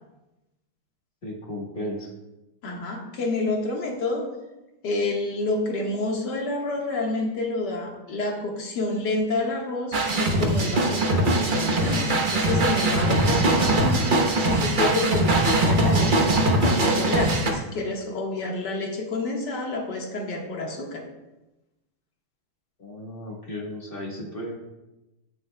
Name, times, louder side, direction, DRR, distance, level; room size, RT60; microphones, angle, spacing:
voice 1, 1.2-2.1 22.8-24.6, left 1 dB, 30° left, -1 dB, 1.3 m, -35 dB
voice 2, 2.6-4.3 4.8-16.4 16.6-21.0, left 2 dB, 55° left, 0 dB, 2.0 m, -29 dB
sound 1, 9.9-17.5, right 1 dB, 45° right, 0.6 m, -21 dB
17.0 x 6.6 x 2.2 m, 0.99 s
omnidirectional pair, 2.3 m